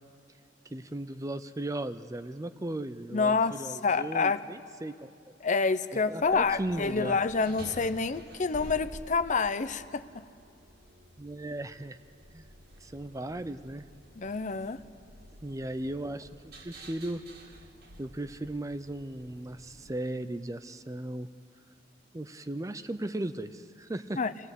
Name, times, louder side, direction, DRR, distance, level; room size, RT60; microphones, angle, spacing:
voice 1, 0.7-5.1 6.1-7.2 11.2-12.0 12.3-12.5 12.8-13.9 15.4-16.3 16.6-17.2 18.0-21.3 22.1-24.2, right 1 dB, 15° right, 12 dB, 0.5 m, -36 dB
voice 2, 3.1-4.4 5.4-10.2 14.2-14.8 24.2-24.3, left 4 dB, 40° left, 13 dB, 0.6 m, -28 dB
sound 1, 6.2-20.0, right 1 dB, 55° right, 2.2 m, -50 dB
25.5 x 17.5 x 8.2 m, 2.3 s
head